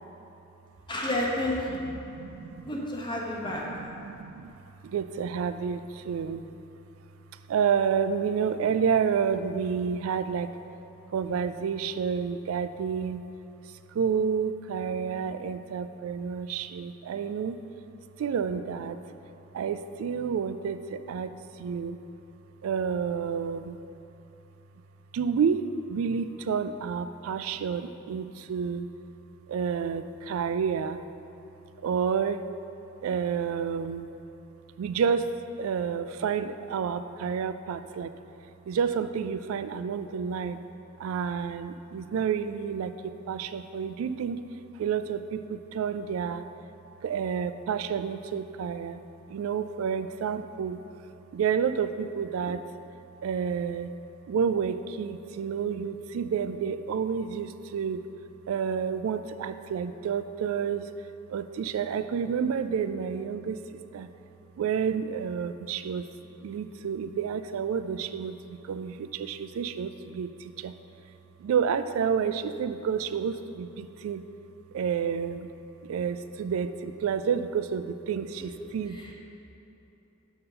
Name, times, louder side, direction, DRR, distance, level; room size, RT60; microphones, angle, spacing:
voice 1, 0.9-1.6 2.6-3.6 78.9-79.1, left 1 dB, 20° left, -3 dB, 1.0 m, -30 dB
voice 2, 2.0-2.7 3.4-4.5 4.8-6.5 7.5-10.5 11.1-13.2 13.9-17.6 18.2-19.0 19.5-22.0 22.6-23.8 25.1-28.9 29.5-31.0 31.8-32.5 33.0-34.1 34.8-35.3 35.6-38.1 38.7-40.6 41.0-44.4 44.7-46.5 47.0-49.0 49.3-50.8 51.3-52.7 53.2-53.9 54.3-58.0 58.5-60.9 61.3-64.1 64.6-66.0 66.4-70.7 71.4-74.2 74.7-75.5 75.8-79.1, right 7 dB, 80° right, 12 dB, 0.3 m, -30 dB
6.7 x 4.2 x 5.5 m, 2.9 s
head